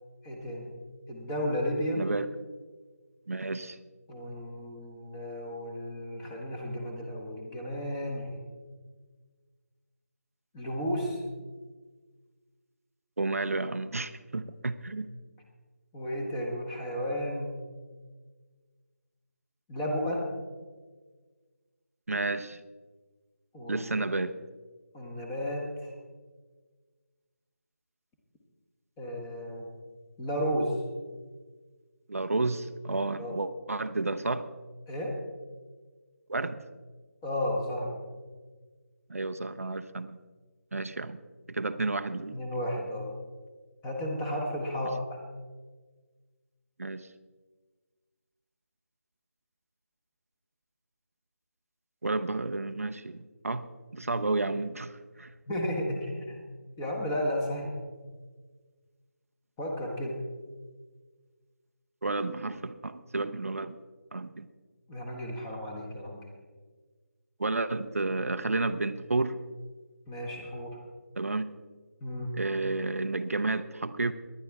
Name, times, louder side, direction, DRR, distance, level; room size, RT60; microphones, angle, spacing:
voice 1, 0.2-0.7 1.1-2.1 4.1-8.4 10.5-11.2 15.9-17.6 19.7-20.2 23.5-24.1 24.9-25.9 29.0-29.7 30.2-30.8 33.2-33.4 34.9-35.2 37.2-38.0 42.3-43.1 43.8-45.2 55.5-56.4 56.8-57.8 59.6-60.2 64.9-66.2 70.1-70.8 72.0-72.3, equal, 10° left, 0 dB, 1.1 m, -33 dB
voice 2, 1.9-2.3 3.3-3.8 13.2-15.1 22.1-22.6 23.7-24.4 32.1-34.5 36.3-36.6 39.1-40.2 40.7-41.2 41.5-42.4 46.8-47.1 52.0-53.7 53.9-55.3 62.0-63.8 64.1-64.5 67.4-69.4 71.2-71.5 72.3-74.1, right 3 dB, 65° right, 10 dB, 0.7 m, -31 dB
19.0 x 11.0 x 3.5 m, 1.4 s
figure-of-eight pair, 170°, 9 cm